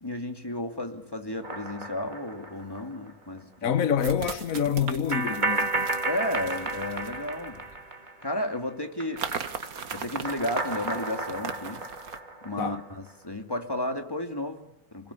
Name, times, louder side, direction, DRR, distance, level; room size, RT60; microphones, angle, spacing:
voice 1, 0.0-3.7 6.0-7.6 8.2-9.3 9.9-11.9 12.4-15.1, left 1 dB, 15° left, 2.7 m, -33 dB
sound 1, 1.4-3.1 3.4-3.5 5.1-8.6 8.8-13.1, right 3 dB, 30° right, 2.5 m, -33 dB
sound 2, 2.6-2.7 4.0-7.8 9.2-12.2, right 6 dB, 75° right, 1.8 m, -38 dB
voice 2, 3.6-5.9 12.6-12.8, left 8 dB, 65° left, 1.6 m, -27 dB
30.0 x 22.0 x 8.5 m
omnidirectional pair, 1.6 m